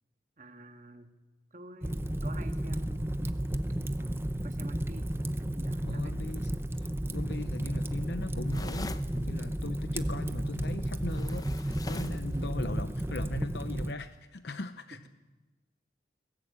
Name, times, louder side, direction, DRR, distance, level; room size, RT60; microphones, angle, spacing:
voice 1, 0.4-1.2 1.5-3.4 4.0-6.2 12.3-12.5 14.9-15.1, right 1 dB, 45° right, 6 dB, 1.8 m, -49 dB
Fire, 1.8-13.9, right 1 dB, 15° right, 0.7 m, -33 dB
voice 2, 5.8-6.5 6.8-15.1, left 3 dB, 70° left, 10 dB, 0.8 m, -40 dB
sound 1, 8.5-9.1 11.1-12.3, left 2 dB, 20° left, 0.7 m, -42 dB
21.5 x 18.0 x 8.7 m, 1.1 s
head